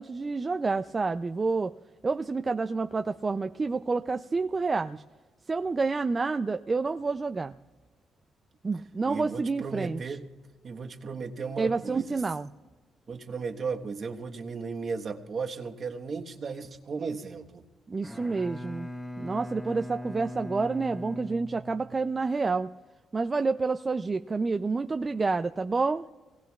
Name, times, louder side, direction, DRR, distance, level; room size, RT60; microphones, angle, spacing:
voice 1, 0.0-1.7 2.0-5.0 5.5-7.5 8.6-10.2 11.6-12.5 17.9-18.9 19.2-22.7 23.1-26.0, right 4 dB, 30° right, 9 dB, 0.4 m, -29 dB
voice 2, 9.1-10.2 10.6-12.2 13.1-17.6, right 5 dB, 50° right, 3 dB, 1.2 m, -35 dB
Bowed string instrument, 17.9-22.3, left 1 dB, 10° left, 1.1 m, -40 dB
24.5 x 19.0 x 2.4 m, 1.3 s
cardioid pair, 90°, 0 cm